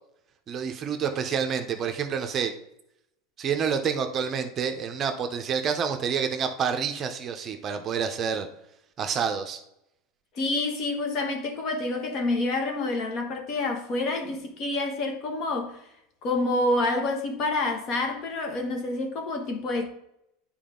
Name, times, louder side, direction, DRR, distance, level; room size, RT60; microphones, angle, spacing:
voice 1, 0.5-2.5 3.4-8.5 9.0-9.6, right 7 dB, 30° right, 0.8 m, -28 dB
voice 2, 10.3-15.8 16.2-19.9, left 2 dB, 45° left, 1.4 m, -28 dB
9.0 x 4.4 x 3.8 m
supercardioid pair, 130°, 0 cm